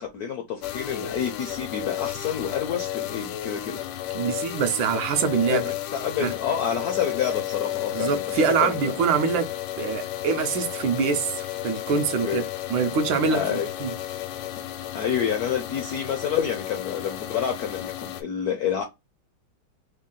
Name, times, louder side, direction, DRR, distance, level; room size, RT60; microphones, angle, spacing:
voice 1, 0.0-3.8 5.4-8.2 8.4-8.9 12.2-12.4 13.3-13.7 14.9-18.8, left 8 dB, 70° left, 0.9 m, -28 dB
sound 1, 0.6-18.2, left 13 dB, 85° left, 1.4 m, -33 dB
voice 2, 4.1-5.6 6.2-6.3 7.9-9.5 9.8-13.9, right 6 dB, 75° right, 1.2 m, -25 dB
3.6 x 2.2 x 3.7 m
omnidirectional pair, 2.3 m